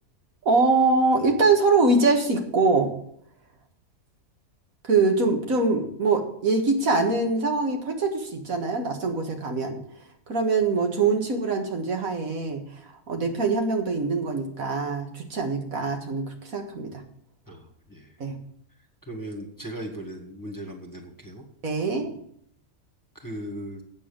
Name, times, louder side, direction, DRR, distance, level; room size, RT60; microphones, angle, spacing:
voice 1, 0.5-2.9 4.9-9.8 10.3-12.6 13.1-16.2 16.5-17.0 18.2-18.4 21.6-22.1, right 3 dB, 75° right, 3 dB, 2.0 m, -23 dB
voice 2, 17.5-18.1 19.0-21.4 23.1-23.8, right 1 dB, 15° left, 2 dB, 1.7 m, -38 dB
8.5 x 7.2 x 8.6 m, 0.67 s
omnidirectional pair, 1.5 m